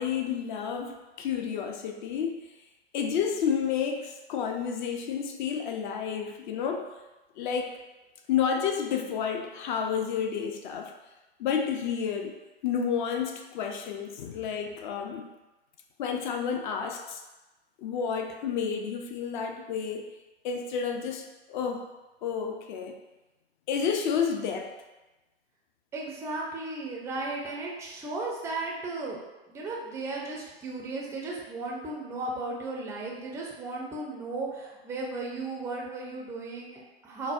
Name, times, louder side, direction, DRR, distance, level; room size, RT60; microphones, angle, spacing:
voice 1, 0.0-2.4 2.9-6.9 7.4-7.8 8.3-10.9 11.4-12.4 12.6-15.3 16.0-17.2 17.8-20.1 20.4-21.9 22.2-22.9 23.7-24.7, left 7 dB, 50° left, 4 dB, 0.5 m, -30 dB
voice 2, 25.9-29.2 29.5-37.3, right 2 dB, 10° right, -2 dB, 0.4 m, -35 dB
4.0 x 2.1 x 2.4 m, 1.1 s
hypercardioid pair, 110°, 32 cm